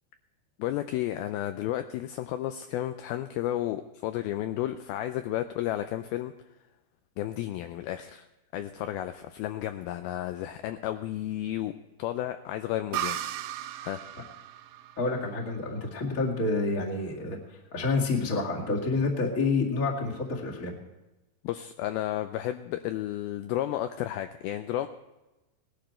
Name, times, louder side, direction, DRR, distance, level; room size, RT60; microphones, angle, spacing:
voice 1, 0.6-6.3 7.2-8.3 8.5-13.2 13.8-14.0 21.4-24.9, left 13 dB, 80° left, 9 dB, 2.2 m, -32 dB
sound 1, 12.9-16.5, right 12 dB, 90° right, 2.0 m, -37 dB
voice 2, 15.0-17.4 17.7-20.8, left 3 dB, 30° left, -2 dB, 1.7 m, -28 dB
18.5 x 12.0 x 4.4 m, 1.0 s
omnidirectional pair, 4.7 m